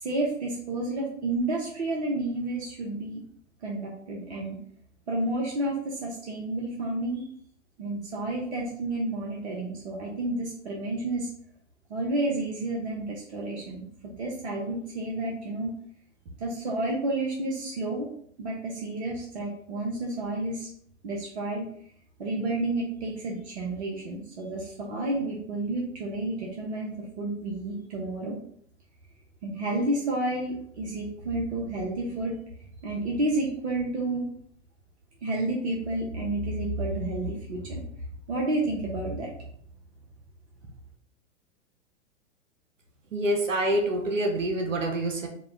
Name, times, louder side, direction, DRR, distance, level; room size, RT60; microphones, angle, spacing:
voice 1, 0.0-3.2 3.6-4.6 5.1-7.2 7.8-11.3 11.9-15.7 16.4-18.1 18.4-20.7 21.0-21.7 22.2-28.4 29.4-32.4 32.8-34.3 35.2-37.8 38.3-39.3, right 2 dB, 60° right, -2 dB, 1.2 m, -30 dB
voice 2, 43.1-45.3, right 1 dB, 85° right, 3 dB, 0.9 m, -26 dB
4.7 x 2.4 x 3.4 m, 0.64 s
figure-of-eight pair, 110°, 37 cm